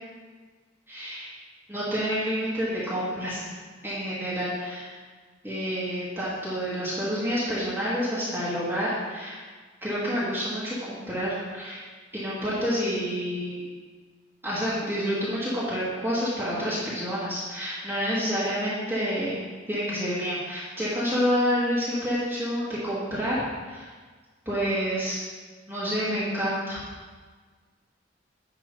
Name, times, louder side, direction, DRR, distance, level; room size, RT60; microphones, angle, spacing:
voice 1, 0.9-1.3 1.7-3.4 3.8-4.9 5.4-9.4 9.8-11.8 12.1-13.6 14.4-19.4 19.7-23.9 24.5-25.2 25.7-26.8, equal, 10° right, -11 dB, 2.0 m, -28 dB
9.9 x 3.7 x 5.4 m, 1.4 s
head